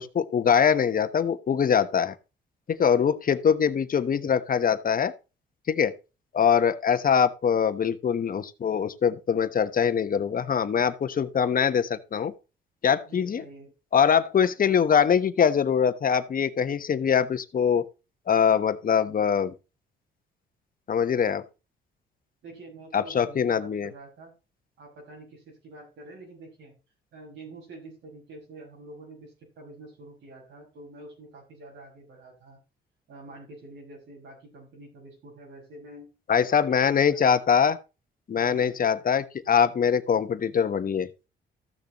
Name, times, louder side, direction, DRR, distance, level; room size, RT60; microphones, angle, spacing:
voice 1, 0.0-2.1 2.7-5.1 5.7-5.9 6.3-12.3 12.8-13.4 13.9-17.8 18.3-19.5 20.9-21.4 22.9-23.9 36.3-37.8 38.3-41.1, left 7 dB, 45° left, 1.2 m, -23 dB
voice 2, 13.1-13.7 22.4-24.4 24.8-26.7 27.1-32.6 33.1-36.1 36.5-37.2 38.3-38.8, right 2 dB, 75° right, 5.8 m, -47 dB
14.5 x 6.8 x 3.1 m
cardioid pair, 90°, 20 cm